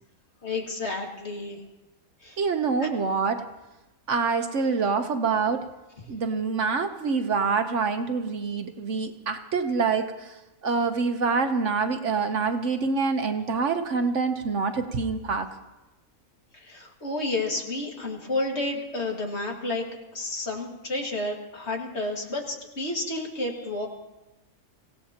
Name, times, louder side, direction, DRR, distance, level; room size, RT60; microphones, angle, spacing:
voice 1, 0.4-1.6 2.2-2.4 2.8-2.9 16.6-19.9 20.1-23.9, left 2 dB, 50° left, 1 dB, 2.3 m, -31 dB
voice 2, 2.4-3.4 4.1-5.7 6.1-15.5, right 4 dB, 60° right, 7 dB, 1.2 m, -26 dB
25.5 x 16.5 x 2.9 m, 1.0 s
omnidirectional pair, 1.5 m